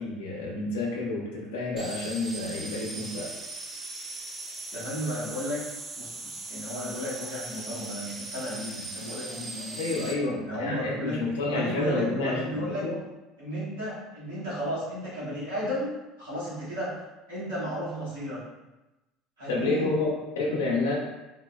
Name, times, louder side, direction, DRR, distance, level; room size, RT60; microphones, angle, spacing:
voice 1, 0.0-3.4 9.8-13.0 19.5-20.9, left 2 dB, 80° left, -3 dB, 0.8 m, -29 dB
sound 1, 1.8-10.1, right 2 dB, 25° right, 0.5 m, -39 dB
voice 2, 4.7-5.6 6.0-10.0 10.5-11.2 11.5-12.8 13.4-17.0 17.3-18.4 19.4-19.9, equal, 90° right, -10 dB, 1.5 m, -33 dB
3.7 x 2.0 x 2.3 m, 1.0 s
hypercardioid pair, 75°, 0 cm